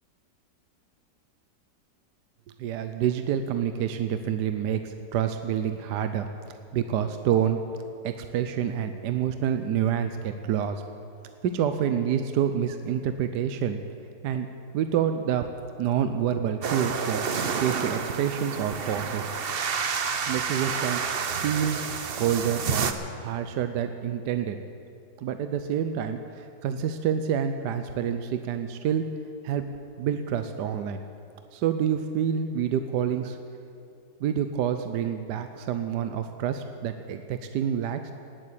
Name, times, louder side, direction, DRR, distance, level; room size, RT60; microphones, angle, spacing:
voice 1, 2.6-7.6 8.0-10.8 11.4-13.8 14.2-14.5 14.7-15.5 15.8-17.2 17.6-19.3 20.3-21.0 21.3-21.8 22.1-22.9 23.2-24.6 25.2-29.0 29.4-29.6 30.0-31.0 31.5-33.4 34.2-38.1, right 9 dB, 75° right, 8 dB, 1.2 m, -27 dB
sound 1, 16.6-22.9, right 6 dB, 50° right, 0.7 m, -29 dB
19.0 x 7.8 x 8.4 m, 2.7 s
omnidirectional pair, 1.9 m